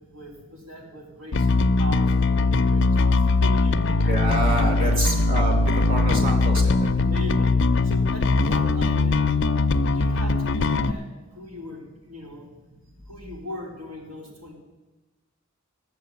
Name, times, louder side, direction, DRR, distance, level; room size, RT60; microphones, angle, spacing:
voice 1, 0.1-4.1 4.8-5.1 6.9-9.2 9.8-11.1 11.3-12.5 13.1-14.5, equal, 85° right, -2 dB, 3.6 m, -40 dB
Bass guitar, 1.3-10.9, left 3 dB, 55° left, 0.5 m, -21 dB
voice 2, 4.1-5.5 5.9-6.9, equal, 40° right, 0 dB, 2.9 m, -26 dB
11.5 x 8.3 x 8.3 m, 1.1 s
head